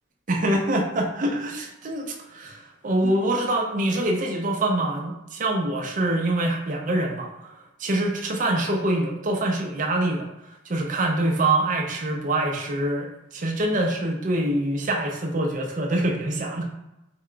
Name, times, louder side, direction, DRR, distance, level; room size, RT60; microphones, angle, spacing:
voice 1, 0.3-7.5 7.8-10.3 10.7-13.1 13.3-16.6, right 1 dB, 40° right, 1 dB, 0.5 m, -25 dB
3.7 x 2.2 x 3.7 m, 0.93 s
head